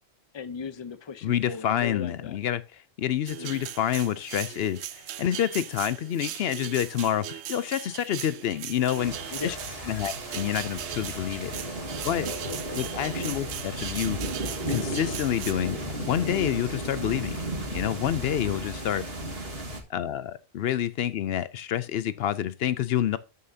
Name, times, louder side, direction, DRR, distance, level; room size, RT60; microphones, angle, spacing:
voice 1, 0.3-2.4 3.4-3.7 9.3-10.1, left 5 dB, 30° left, 0.6 m, -38 dB
voice 2, 1.2-9.2 9.4-9.6 9.9-11.5 12.0-12.3 12.8-14.2 14.7-17.4 17.7-19.0 19.9-23.2, left 10 dB, 70° left, 0.8 m, -28 dB
sound 1, 3.3-15.5, right 11 dB, 90° right, 0.9 m, -39 dB
sound 2, 9.0-19.8, right 1 dB, 65° right, 2.0 m, -34 dB
13.0 x 5.6 x 2.7 m
omnidirectional pair, 1.1 m